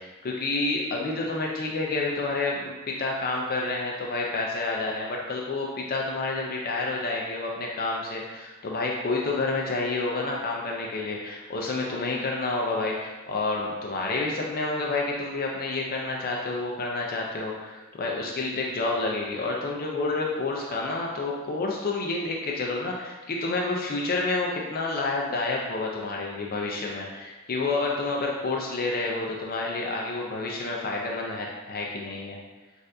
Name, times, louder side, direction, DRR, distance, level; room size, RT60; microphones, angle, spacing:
voice 1, 0.0-32.4, left 3 dB, 45° left, -1 dB, 0.5 m, -29 dB
6.3 x 2.5 x 2.6 m, 1.2 s
head